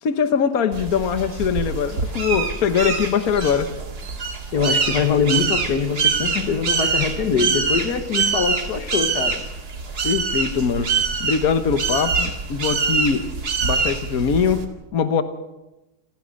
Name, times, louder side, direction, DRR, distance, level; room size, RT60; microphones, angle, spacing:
voice 1, 0.0-3.7 10.0-10.9 11.2-13.2 13.6-14.6 14.9-15.2, left 6 dB, 70° left, 9 dB, 1.6 m, -22 dB
sound 1, 0.7-14.7, right 5 dB, 90° right, 2.8 m, -25 dB
voice 2, 4.5-9.4, left 6 dB, 90° left, 8 dB, 2.0 m, -23 dB
28.0 x 16.5 x 6.4 m, 1.0 s
omnidirectional pair, 1.6 m